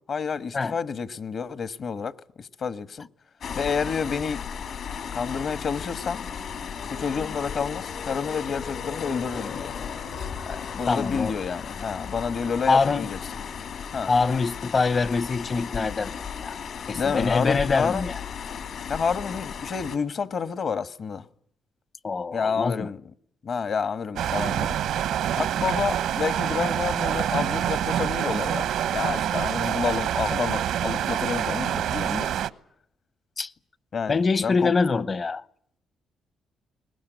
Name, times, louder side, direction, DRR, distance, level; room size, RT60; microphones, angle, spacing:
voice 1, 0.1-3.1 3.5-4.4 5.1-6.3 6.9-9.7 10.5-13.2 13.9-14.1 16.9-18.1 18.9-21.3 22.3-23.0 23.4-24.8 25.4-32.3 33.9-34.7, left 6 dB, 50° left, 1.3 m, -29 dB
sound 1, 3.4-20.0, left 7 dB, 70° left, 3.3 m, -36 dB
sound 2, 5.0-15.3 15.9-16.0, left 6 dB, 85° left, 7.1 m, -43 dB
voice 2, 10.9-11.3 12.7-13.1 14.1-16.5 16.9-18.2 22.0-22.9 33.4-33.5 34.1-35.4, left 4 dB, 35° left, 1.0 m, -24 dB
sound 3, 24.2-32.5, right 10 dB, 80° right, 1.0 m, -26 dB
22.5 x 20.0 x 9.2 m
cardioid pair, 90°, 0 cm